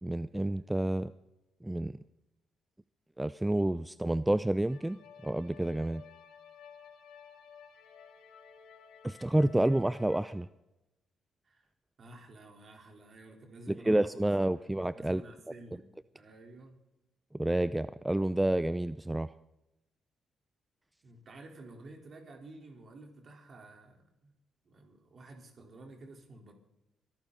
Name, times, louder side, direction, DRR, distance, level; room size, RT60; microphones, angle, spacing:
voice 1, 0.0-1.1 1.6-2.0 3.2-6.0 9.0-10.5 13.7-15.2 17.3-19.3, right 1 dB, 10° right, 16 dB, 0.5 m, -29 dB
sound 1, 4.7-10.3, left 7 dB, 75° left, 2.4 m, -54 dB
voice 2, 9.1-9.7 11.4-11.7 12.0-14.7 14.9-15.9 16.1-16.8 21.0-24.3 24.6-26.5, right 2 dB, 50° right, 2 dB, 4.4 m, -52 dB
25.0 x 12.0 x 4.2 m, 0.92 s
hypercardioid pair, 50°, 0 cm